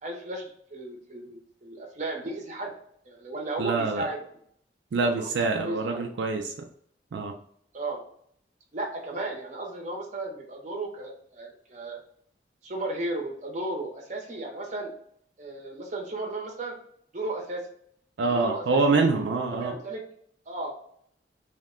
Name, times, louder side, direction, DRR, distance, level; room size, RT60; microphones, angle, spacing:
voice 1, 0.0-2.7 3.0-4.2 5.0-6.0 7.7-8.0 8.7-12.0 12.6-14.9 15.4-16.7 17.1-17.6 18.2-18.8 19.5-20.0 20.5-21.0, right 2 dB, 40° right, 1 dB, 0.7 m, -35 dB
voice 2, 3.6-4.0 4.9-6.5 7.1-7.3 18.2-19.7, right 3 dB, 85° right, 3 dB, 0.4 m, -25 dB
2.8 x 2.1 x 3.6 m, 0.65 s
head